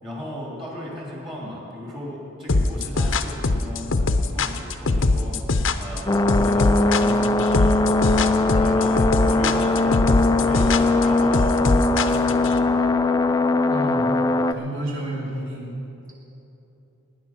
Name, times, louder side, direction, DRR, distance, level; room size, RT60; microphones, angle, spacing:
voice 1, 0.0-5.4 5.8-8.3 8.5-13.0, left 1 dB, 25° right, -4 dB, 2.9 m, -35 dB
sound 1, 2.5-12.5, left 3 dB, 60° left, 0.7 m, -21 dB
sound 2, 6.1-14.5, left 2 dB, 15° left, 0.3 m, -20 dB
voice 2, 13.7-14.2 14.5-15.7, right 1 dB, 60° right, -5 dB, 3.3 m, -30 dB
19.5 x 9.6 x 5.9 m, 2.9 s
head